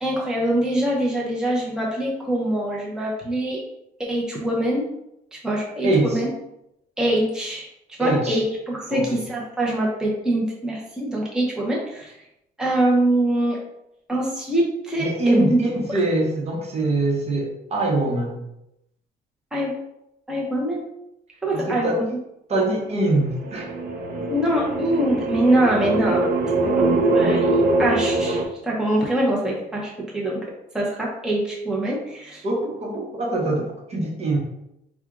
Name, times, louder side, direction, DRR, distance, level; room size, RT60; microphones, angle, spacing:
voice 1, 0.0-3.6 4.1-4.8 5.3-6.3 7.0-7.7 8.0-12.1 12.6-13.6 14.1-15.6 19.5-19.7 20.3-20.8 21.4-22.0 24.3-26.2 26.6-30.4 30.7-32.4, right 1 dB, 5° right, -4 dB, 0.9 m, -24 dB
voice 2, 5.8-6.2 8.0-8.4 8.9-9.2 15.0-18.4 21.5-22.0 22.5-23.7 32.4-34.4, right 2 dB, 40° right, -2 dB, 1.1 m, -23 dB
sound 1, 23.3-28.5, right 2 dB, 60° right, 0.8 m, -22 dB
4.3 x 2.4 x 3.8 m, 0.83 s
cardioid pair, 110°, 17 cm